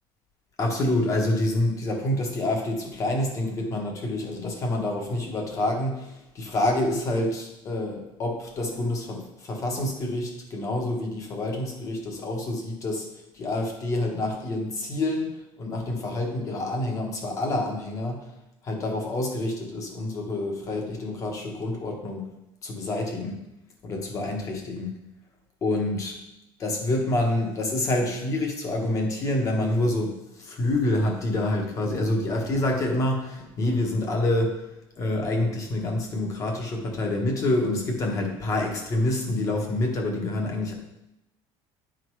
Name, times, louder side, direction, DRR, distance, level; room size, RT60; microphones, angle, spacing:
voice 1, 0.6-13.1 13.3-18.3 18.6-22.3 22.6-23.4 23.8-25.0 25.6-26.2 26.6-34.6 35.0-40.7, left 1 dB, 30° left, 1 dB, 1.3 m, -27 dB
10.5 x 3.8 x 4.8 m, 0.89 s
cardioid pair, 165°, 11 cm